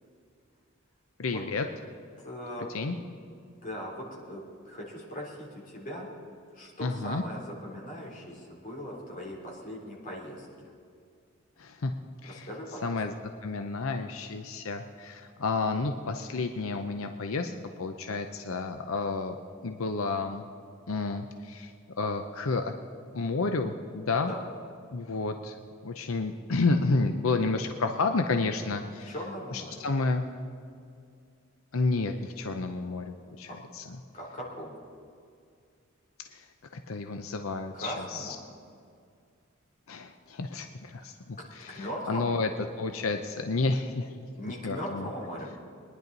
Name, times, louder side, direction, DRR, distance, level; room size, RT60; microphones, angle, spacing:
voice 1, 1.2-1.7 2.7-3.0 6.8-7.2 11.6-11.9 12.2-12.5 12.8-13.1 13.4-17.5 17.8-19.3 19.6-20.4 20.9-22.7 23.1-24.3 24.9-25.6 25.8-29.1 29.5-30.3 31.7-33.5 33.7-33.8 36.3-36.4 36.9-38.4 39.9-42.5 42.8-44.1 44.4-45.1, left 3 dB, 85° left, 6 dB, 0.7 m, -30 dB
voice 2, 2.2-2.7 3.6-6.1 6.5-10.7 12.2-13.0 24.3-24.4 29.0-29.9 33.4-33.5 34.1-34.8 37.7-38.3 41.7-42.4 44.4-45.5, equal, 40° left, -3 dB, 3.3 m, -39 dB
22.0 x 10.5 x 4.0 m, 2.3 s
head